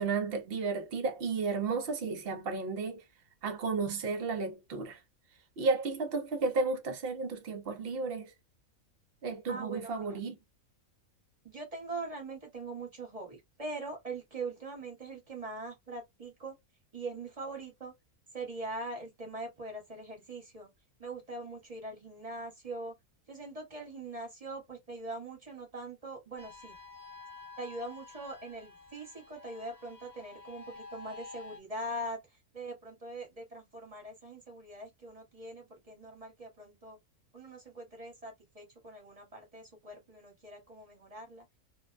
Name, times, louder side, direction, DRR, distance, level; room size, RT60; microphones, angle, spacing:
voice 1, 0.0-3.0 3.4-5.0 5.6-8.3 9.2-10.4, right 4 dB, 55° right, 0.7 m, -33 dB
voice 2, 9.5-10.0 11.4-16.5 16.9-17.9 18.3-20.7 21.0-22.9 23.3-26.7 27.6-32.2 32.5-37.0 37.3-41.5, right 2 dB, 30° right, 1.0 m, -42 dB
sound 1, 26.4-31.6, left 4 dB, 35° left, 0.9 m, -50 dB
2.5 x 2.1 x 2.4 m
omnidirectional pair, 1.5 m